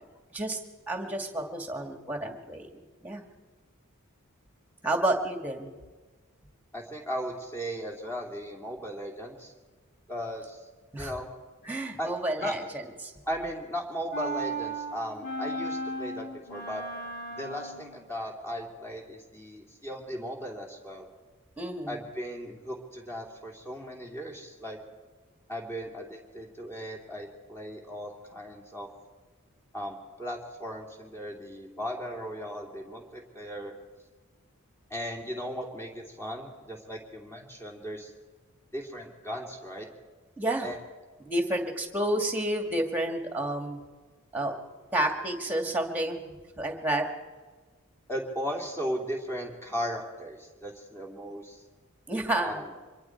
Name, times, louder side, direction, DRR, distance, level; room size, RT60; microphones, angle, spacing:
voice 1, 0.9-3.2 4.8-5.8 10.9-11.1 11.6-13.1 21.6-22.0 40.4-40.7 41.2-43.8 44.3-44.5 44.9-47.1 52.1-52.6, right 1 dB, 10° right, 3 dB, 2.3 m, -30 dB
voice 2, 6.7-9.5 10.1-10.6 11.0-11.3 12.0-12.1 12.4-12.5 13.2-16.8 17.3-21.1 21.9-24.8 25.5-28.9 29.7-33.7 34.9-38.1 38.7-39.9 40.6-40.8 48.1-51.6 52.4-52.6, equal, 10° left, 0 dB, 3.0 m, -37 dB
sound 1, 14.1-18.0, right 1 dB, 50° left, 3.7 m, -35 dB
25.0 x 22.5 x 4.7 m, 1.3 s
head